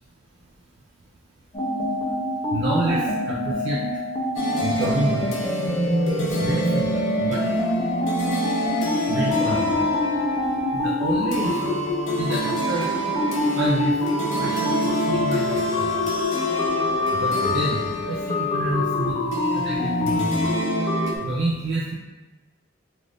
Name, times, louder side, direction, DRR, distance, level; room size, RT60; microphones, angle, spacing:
sound 1, 1.5-21.2, left 1 dB, 20° left, 0.5 m, -25 dB
voice 1, 2.5-3.8 4.6-5.3 6.4-6.9 7.2-7.4 9.1-9.8 10.7-11.8 12.2-12.9 13.6-13.9 14.4-15.9 17.2-20.3 21.2-21.9, right 2 dB, 70° right, -5 dB, 0.4 m, -28 dB
sound 2, 4.4-21.1, equal, 85° left, 0.6 m, -28 dB
2.5 x 2.5 x 3.3 m, 1.2 s
head